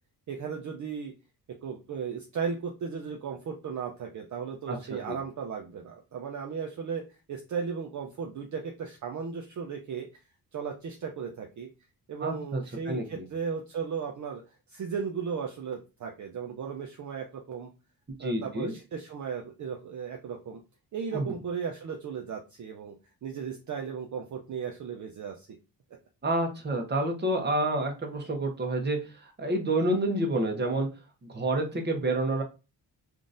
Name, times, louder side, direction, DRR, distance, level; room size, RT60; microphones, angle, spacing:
voice 1, 0.3-1.1 1.6-7.0 7.3-10.2 10.5-11.7 12.1-14.4 14.7-17.7 18.2-20.6 20.9-22.9 23.2-25.5, right 6 dB, 50° right, 2 dB, 0.5 m, -36 dB
voice 2, 4.7-5.2 12.2-13.2 18.2-18.7 21.1-21.4 26.2-30.9 31.2-32.4, right 1 dB, 25° right, 3 dB, 0.9 m, -29 dB
3.7 x 2.5 x 2.5 m, 0.30 s
wide cardioid pair, 110°, 39 cm